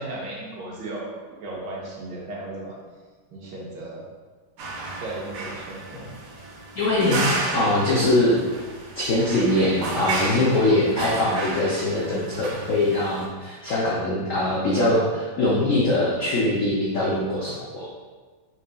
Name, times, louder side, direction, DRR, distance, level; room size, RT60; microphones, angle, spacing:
voice 1, 0.0-2.8 3.3-4.0 5.0-6.2, right 2 dB, 65° right, -4 dB, 1.4 m, -35 dB
sound 1, 4.6-13.3, right 2 dB, 85° right, 1.5 m, -32 dB
voice 2, 6.8-7.2 7.5-8.4 9.0-17.9, left 1 dB, 85° left, -6 dB, 0.7 m, -22 dB
4.6 x 3.9 x 2.2 m, 1.4 s
omnidirectional pair, 2.2 m